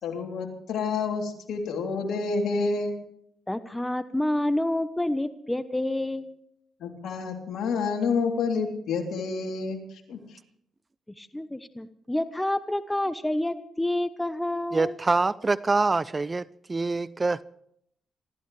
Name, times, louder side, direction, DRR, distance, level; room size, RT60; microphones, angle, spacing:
voice 1, 0.0-2.9 6.8-10.2, left 4 dB, 75° left, 3.3 m, -29 dB
voice 2, 3.5-6.3 11.2-14.9, left 1 dB, 10° left, 1.0 m, -28 dB
voice 3, 14.7-17.4, right 3 dB, 30° right, 0.5 m, -25 dB
27.0 x 14.5 x 3.3 m
cardioid pair, 70°, 0 cm